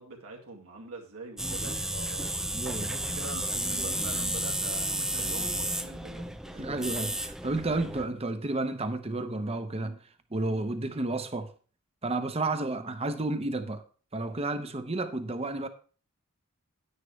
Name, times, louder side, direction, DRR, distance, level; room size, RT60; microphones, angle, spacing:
voice 1, 0.0-6.7, right 2 dB, 70° right, 2.2 m, -44 dB
sound 1, 1.4-8.1, right 1 dB, ahead, 0.4 m, -32 dB
voice 2, 2.5-2.9 6.5-10.0 10.3-11.5 12.0-13.8 14.1-15.7, right 2 dB, 30° right, 0.9 m, -31 dB
10.5 x 9.6 x 3.2 m
head